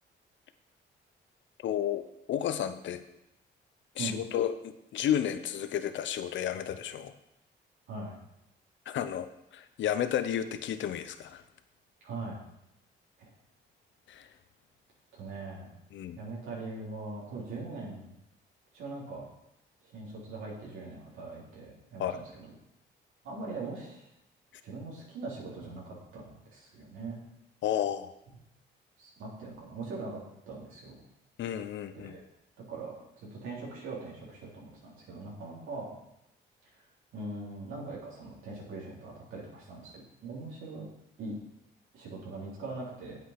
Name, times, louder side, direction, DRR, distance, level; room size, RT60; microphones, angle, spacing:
voice 1, 1.6-2.0 2.3-3.0 4.0-7.1 8.9-9.3 9.5-11.4 14.1-14.3 15.9-16.2 22.0-22.2 27.6-28.1 31.4-32.2, left 10 dB, 70° left, 10 dB, 0.8 m, -32 dB
voice 2, 12.0-12.4 15.1-15.7 16.2-18.1 18.7-19.3 19.9-22.5 23.2-24.1 24.6-27.2 29.0-30.2 30.5-30.9 32.0-32.2 32.7-35.9 37.1-39.9 40.2-40.9 41.2-41.4 41.9-43.2, right 3 dB, 85° right, -5 dB, 3.6 m, -41 dB
8.5 x 7.9 x 5.9 m, 0.84 s
cardioid pair, 90°, 20 cm